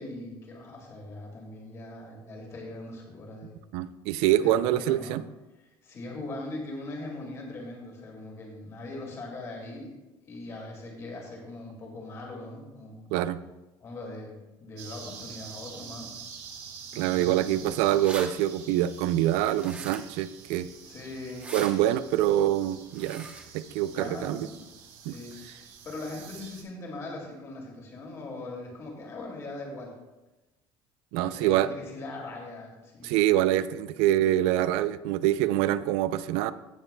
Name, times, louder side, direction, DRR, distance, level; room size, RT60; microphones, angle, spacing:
voice 1, 0.0-3.6 4.4-5.2 5.6-9.9 10.3-13.0 13.8-16.2 17.1-17.6 20.8-21.5 23.8-24.5 25.0-29.9 31.2-33.2, left 2 dB, 30° left, 0 dB, 2.1 m, -41 dB
voice 2, 3.7-5.2 13.1-13.4 16.9-20.7 21.5-23.3 23.5-24.5 25.1-25.2 31.1-31.7 33.0-36.5, right 13 dB, 90° right, 14 dB, 0.4 m, -25 dB
sound 1, 14.8-26.6, right 6 dB, 70° right, 1.9 m, -47 dB
sound 2, 18.0-18.3 19.6-20.2 21.3-21.7 22.9-23.5, right 3 dB, 15° right, 0.8 m, -40 dB
16.0 x 7.0 x 2.2 m, 1.0 s
cardioid pair, 170°, 9 cm